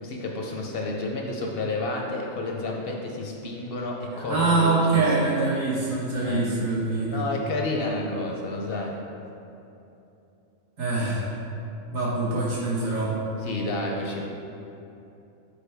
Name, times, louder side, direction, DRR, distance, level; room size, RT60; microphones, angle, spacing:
voice 1, 0.0-5.0 6.2-6.5 7.1-9.0 13.4-14.3, left 2 dB, 60° left, 0 dB, 0.7 m, -30 dB
voice 2, 4.3-7.2 10.8-11.3 11.9-13.2, right 3 dB, 80° right, -7 dB, 1.7 m, -24 dB
6.7 x 4.6 x 3.3 m, 2.8 s
omnidirectional pair, 1.4 m